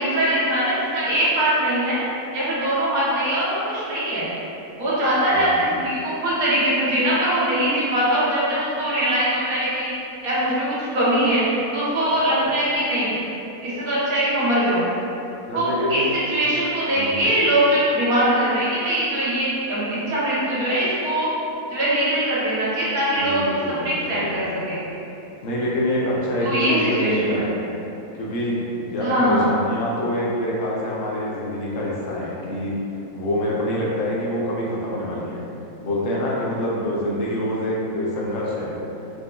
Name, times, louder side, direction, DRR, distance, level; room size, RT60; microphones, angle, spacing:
voice 1, 0.0-2.0 2.3-4.3 4.8-9.9 10.2-11.4 11.7-13.1 13.6-14.9 15.5-21.3 21.7-24.8 26.4-27.3 29.0-29.4, right 1 dB, 75° right, -9 dB, 1.4 m, -22 dB
voice 2, 15.4-16.1 16.9-17.3 23.1-24.8 25.4-27.6 28.2-32.8 33.1-35.4 35.8-38.7, left 1 dB, 70° left, -5 dB, 0.9 m, -26 dB
4.3 x 2.5 x 2.2 m, 2.9 s
omnidirectional pair, 1.6 m